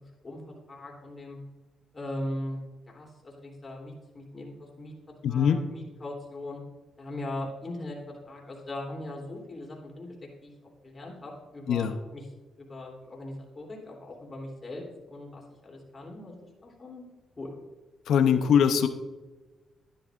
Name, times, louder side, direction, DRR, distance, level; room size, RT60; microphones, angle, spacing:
voice 1, 0.7-1.4 1.9-2.6 2.9-4.9 5.3-6.6 7.0-10.1 10.4-10.5 10.8-12.2 12.6-17.0 17.4-17.5, left 1 dB, 35° left, -1 dB, 3.3 m, -39 dB
voice 2, 5.2-5.6 11.7-11.9 18.1-18.9, left 8 dB, 75° left, 9 dB, 0.7 m, -22 dB
11.5 x 11.0 x 2.5 m, 1.2 s
cardioid pair, 75°, 0 cm